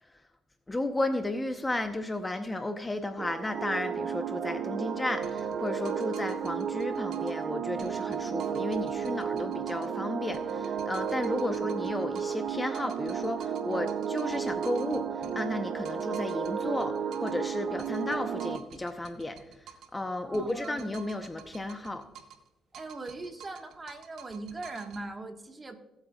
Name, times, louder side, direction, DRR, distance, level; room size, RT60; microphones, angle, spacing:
voice 1, 0.7-22.1, left 2 dB, 15° left, 7 dB, 0.8 m, -34 dB
sound 1, 3.2-18.6, right 7 dB, 60° right, 0.7 m, -33 dB
sound 2, 5.2-7.4 7.8-10.0 10.3-12.5 12.7-17.4 17.8-20.0 20.3-22.5 22.7-25.1, right 8 dB, 80° right, 1.1 m, -51 dB
voice 2, 20.2-20.9 22.7-25.8, right 2 dB, 25° right, 5 dB, 1.4 m, -40 dB
18.5 x 8.2 x 2.3 m, 0.96 s
cardioid pair, 90°, 0 cm